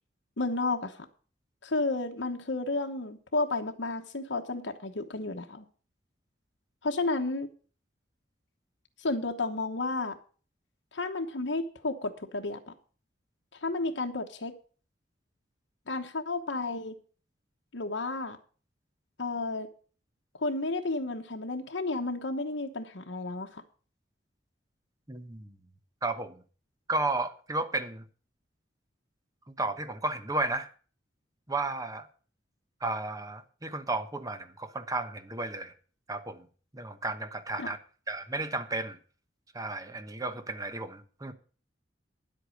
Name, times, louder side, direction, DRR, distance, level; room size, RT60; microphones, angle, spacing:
voice 1, 0.4-0.9 1.6-5.6 6.8-7.5 9.0-10.2 10.9-12.6 13.6-14.5 15.9-17.0 17.7-18.4 19.2-19.7 20.4-23.6 37.6-37.7, left 2 dB, 70° left, 1.1 m, -32 dB
voice 2, 25.1-25.5 26.0-26.4 26.9-28.0 29.6-30.7 31.5-32.1 32.8-35.7 36.1-36.5 36.7-37.8 38.1-39.0 39.5-41.3, right 2 dB, 20° right, 1.0 m, -33 dB
10.0 x 8.3 x 6.4 m
head